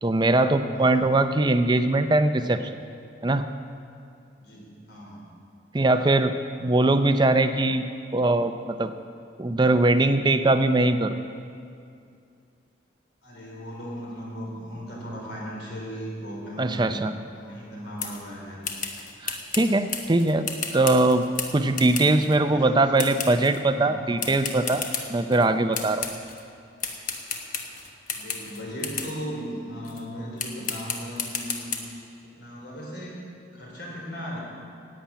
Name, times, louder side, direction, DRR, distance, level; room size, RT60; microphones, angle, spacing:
voice 1, 0.0-2.7 3.2-3.4 5.7-6.3 6.6-7.8 8.1-8.9 9.4-11.2 16.6-17.1 19.2-20.5 20.7-21.2 21.5-24.8 25.1-26.0, right 2 dB, 25° right, 9 dB, 0.5 m, -21 dB
voice 2, 0.7-1.1 4.4-5.2 13.2-16.9 17.3-18.6 21.8-22.9 23.7-24.2 28.1-31.7 32.2-33.2 33.5-34.4, equal, 60° left, -3 dB, 3.9 m, -37 dB
sound 1, 18.0-18.2 18.6-22.4 23.0-23.6 24.2-25.5 25.7-26.4 26.8-29.2 29.8-30.0 30.4-31.8, left 5 dB, 45° left, 1.1 m, -33 dB
11.5 x 8.7 x 8.8 m, 2.5 s
head